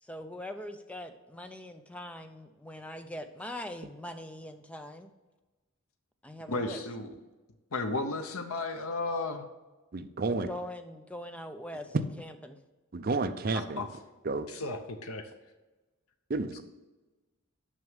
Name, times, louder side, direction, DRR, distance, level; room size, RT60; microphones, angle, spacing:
voice 1, 0.0-5.1 6.2-6.8 10.3-12.6, left 1 dB, 5° left, 7 dB, 0.5 m, -42 dB
voice 2, 6.5-7.1 7.7-9.4 13.8-13.9 14.5-15.3, left 2 dB, 80° left, 6 dB, 0.8 m, -34 dB
voice 3, 9.9-10.5 12.9-13.8 14.2-14.5 16.3-16.6, right 3 dB, 45° right, 9 dB, 0.5 m, -31 dB
6.3 x 6.0 x 7.2 m, 1.2 s
head